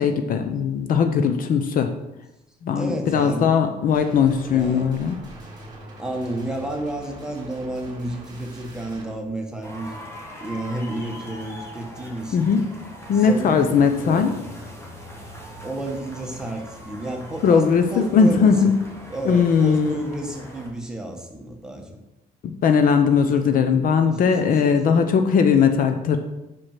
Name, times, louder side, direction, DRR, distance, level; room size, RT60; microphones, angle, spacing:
voice 1, 0.0-1.9 2.6-5.2 12.3-12.6 13.1-14.3 17.4-18.8 19.2-20.0 22.6-26.2, left 6 dB, 55° left, 7 dB, 0.7 m, -19 dB
voice 2, 2.7-3.5 4.5-4.9 6.0-10.0 10.4-12.5 13.1-14.3 15.6-18.7 19.1-22.0 24.1-25.0, right 1 dB, 5° right, 1 dB, 1.2 m, -31 dB
sound 1, 3.9-9.1, right 2 dB, 25° right, 2.4 m, -42 dB
sound 2, 9.6-20.7, equal, 15° left, 1.7 m, -40 dB
5.9 x 4.9 x 5.9 m, 0.95 s
cardioid pair, 110°, 17 cm